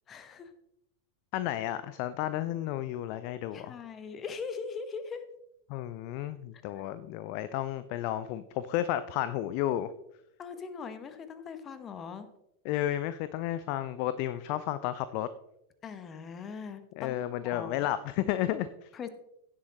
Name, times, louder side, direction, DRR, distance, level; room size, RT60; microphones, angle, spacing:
voice 1, 0.1-0.5 3.5-5.2 10.4-12.3 15.8-17.2 17.5-17.9 18.9-19.1, left 5 dB, 25° left, 11 dB, 1.1 m, -40 dB
voice 2, 1.3-3.8 5.7-9.9 12.6-15.3 17.0-18.9, left 13 dB, 45° left, 14 dB, 0.5 m, -32 dB
16.5 x 7.6 x 3.0 m, 0.81 s
figure-of-eight pair, 90°, 0 cm